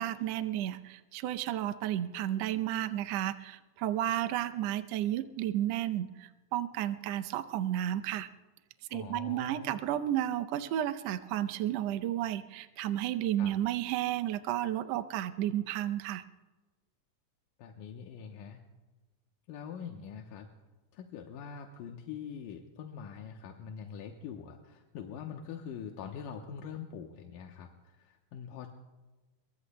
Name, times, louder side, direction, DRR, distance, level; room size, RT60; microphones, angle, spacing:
voice 1, 0.0-8.3 8.9-16.2, right 12 dB, 80° right, 10 dB, 1.5 m, -32 dB
voice 2, 8.9-9.9 13.4-13.5 17.6-18.6 19.5-20.5 20.9-28.7, left 7 dB, 85° left, 2 dB, 2.5 m, -44 dB
26.5 x 22.5 x 2.2 m, 1.2 s
omnidirectional pair, 3.7 m